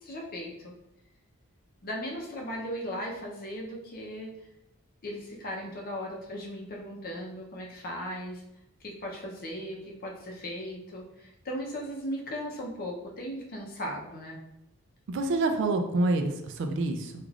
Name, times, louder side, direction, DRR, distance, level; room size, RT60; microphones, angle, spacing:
voice 1, 0.0-0.7 1.8-4.3 5.0-8.4 8.8-14.4, equal, 45° left, -1 dB, 0.6 m, -37 dB
voice 2, 15.1-17.2, right 2 dB, 55° right, 6 dB, 0.3 m, -27 dB
3.3 x 2.4 x 2.4 m, 0.83 s
head